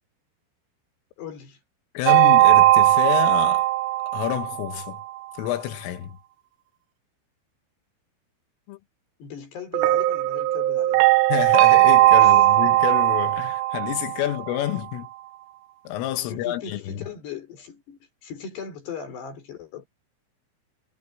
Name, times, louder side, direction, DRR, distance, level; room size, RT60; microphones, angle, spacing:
voice 1, 1.2-1.6 9.2-11.0 12.2-12.4 14.2-14.3 16.3-19.9, left 7 dB, 55° left, 6.6 m, -38 dB
voice 2, 2.0-3.7 4.1-5.0 5.4-6.2 8.7-8.8 11.3-15.1 15.9-17.1, left 13 dB, 80° left, 3.8 m, -28 dB
Meditation Bowls, 2.1-5.0 9.7-14.7, right 16 dB, 80° right, 3.3 m, -18 dB
omnidirectional pair, 5.8 m